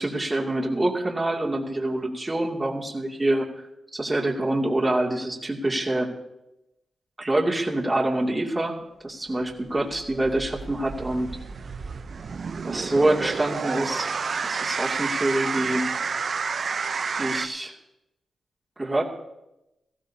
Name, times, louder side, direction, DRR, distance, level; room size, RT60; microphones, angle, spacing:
voice 1, 0.0-3.5 3.9-6.1 7.2-8.8 9.0-11.3 12.6-14.1 14.4-15.9 17.2-17.7 18.8-19.0, right 1 dB, 20° right, -1 dB, 2.5 m, -25 dB
sound 1, 9.6-17.5, right 5 dB, 60° right, 0.7 m, -30 dB
18.5 x 15.0 x 2.8 m, 0.91 s
cardioid pair, 60°, 0 cm